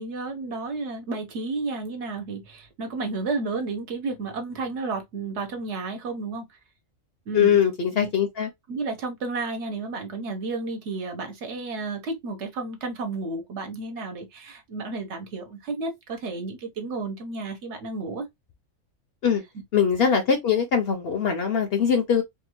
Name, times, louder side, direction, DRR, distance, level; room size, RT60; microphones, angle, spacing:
voice 1, 0.0-6.5 7.3-7.6 7.9-8.1 8.7-18.3, right 3 dB, 65° right, 1.0 m, -32 dB
voice 2, 7.3-8.5 19.2-19.4 19.7-22.2, left 7 dB, 60° left, 0.7 m, -22 dB
2.7 x 2.2 x 2.9 m
omnidirectional pair, 1.4 m